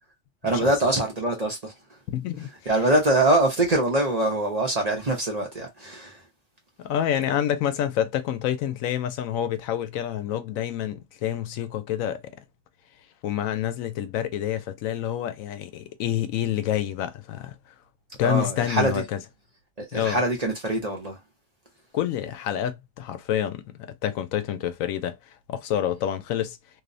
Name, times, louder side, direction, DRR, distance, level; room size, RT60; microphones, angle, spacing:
voice 1, 0.4-2.0 2.7-6.2 18.2-19.0 19.8-21.2, right 2 dB, 40° right, 0.6 m, -24 dB
voice 2, 2.1-2.5 6.8-12.2 13.2-17.5 18.2-19.2 19.9-20.2 21.9-25.2 25.5-26.6, left 10 dB, 90° left, 1.0 m, -28 dB
2.9 x 2.0 x 2.5 m
omnidirectional pair, 1.4 m